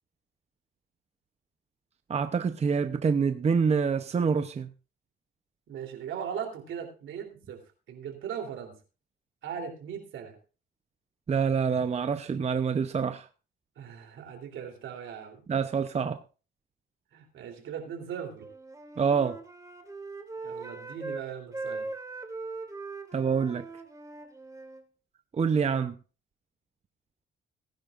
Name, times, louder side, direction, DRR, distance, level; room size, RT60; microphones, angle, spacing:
voice 1, 2.1-4.7 11.3-13.3 15.5-16.2 19.0-19.4 23.1-23.6 25.4-26.0, right 6 dB, 35° right, 9 dB, 0.7 m, -26 dB
voice 2, 5.7-7.6 7.9-8.8 9.4-10.4 13.8-15.4 17.1-18.5 20.4-21.9, right 8 dB, 75° right, 3 dB, 3.3 m, -39 dB
Wind instrument woodwind instrument, 18.4-21.3 21.5-24.8, right 3 dB, 15° right, 2.0 m, -40 dB
19.0 x 10.5 x 2.5 m, 0.33 s
cardioid pair, 90°, 20 cm